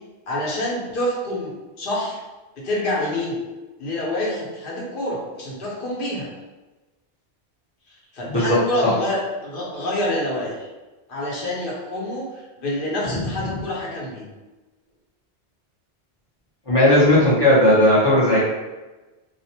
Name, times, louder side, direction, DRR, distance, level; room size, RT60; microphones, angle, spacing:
voice 1, 0.3-2.2 2.6-3.4 3.8-6.3 7.9-10.7 11.1-14.2, left 1 dB, 55° left, -4 dB, 0.9 m, -27 dB
voice 2, 8.3-8.9 13.1-13.6 16.7-18.4, left 1 dB, 30° left, -8 dB, 0.5 m, -17 dB
2.4 x 2.1 x 2.7 m, 1.2 s
omnidirectional pair, 1.1 m